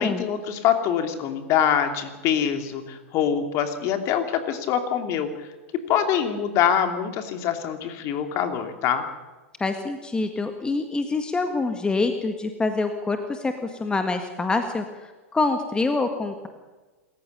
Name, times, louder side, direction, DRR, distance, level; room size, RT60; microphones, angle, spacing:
voice 1, 0.0-5.5 5.9-9.0, left 8 dB, 40° left, 7 dB, 3.0 m, -24 dB
voice 2, 9.6-14.8 15.3-16.5, left 3 dB, 10° left, 7 dB, 1.8 m, -25 dB
27.0 x 14.5 x 6.9 m, 1.2 s
hypercardioid pair, 100°, 7 cm